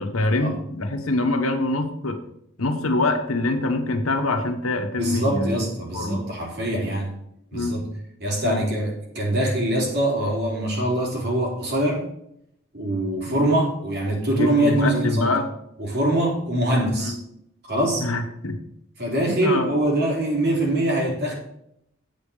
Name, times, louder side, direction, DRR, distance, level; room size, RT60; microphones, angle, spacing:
voice 1, 0.0-2.2 2.6-5.6 5.9-6.2 7.5-7.8 8.4-8.6 13.3-13.5 14.3-15.5 17.0-17.2 18.0-18.6 19.2-19.7, left 2 dB, 85° left, 6 dB, 1.4 m, -24 dB
voice 2, 5.0-7.1 7.5-7.9 8.2-12.0 12.7-15.3 15.8-17.1 17.7-18.0 19.0-21.3, right 1 dB, 50° right, -2 dB, 3.5 m, -23 dB
8.7 x 5.3 x 6.9 m, 0.76 s
head